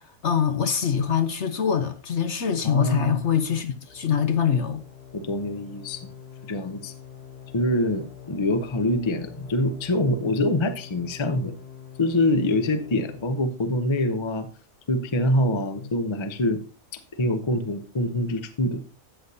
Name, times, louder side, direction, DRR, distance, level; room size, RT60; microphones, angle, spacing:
voice 1, 0.2-4.8 15.8-15.9, left 7 dB, 55° left, 1.0 m, -24 dB
voice 2, 2.6-3.2 5.1-6.1 6.5-6.9 7.5-11.5 12.0-14.5 14.9-16.6 17.2-18.8, left 1 dB, 30° left, 0.6 m, -25 dB
sound 1, 3.8-13.3, left 8 dB, 90° left, 1.8 m, -45 dB
13.0 x 8.2 x 2.8 m
omnidirectional pair, 1.6 m